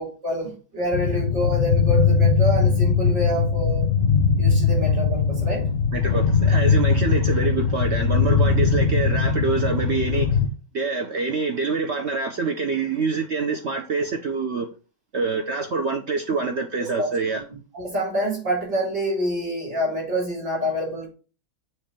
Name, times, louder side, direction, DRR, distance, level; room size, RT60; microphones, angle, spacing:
voice 1, 0.0-3.9 4.4-5.7 16.8-17.1 17.7-21.1, equal, 55° right, 4.4 m, -27 dB
sound 1, 0.9-10.5, left 5 dB, 50° left, 0.8 m, -20 dB
voice 2, 5.9-10.5 10.7-14.7 15.1-17.4, right 4 dB, 75° right, 0.6 m, -26 dB
7.1 x 3.2 x 5.1 m
omnidirectional pair, 2.1 m